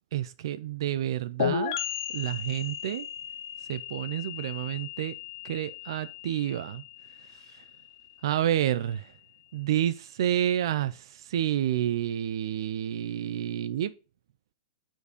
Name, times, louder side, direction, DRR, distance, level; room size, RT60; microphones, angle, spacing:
voice 1, 0.1-1.8 2.1-3.1 3.7-5.1 5.4-6.8 8.2-9.1 9.5-13.9, right 11 dB, 70° right, 0.4 m, -29 dB
sound 1, 1.4-8.9, left 10 dB, 60° left, 0.8 m, -36 dB
7.0 x 4.6 x 5.0 m
hypercardioid pair, 140°, 3 cm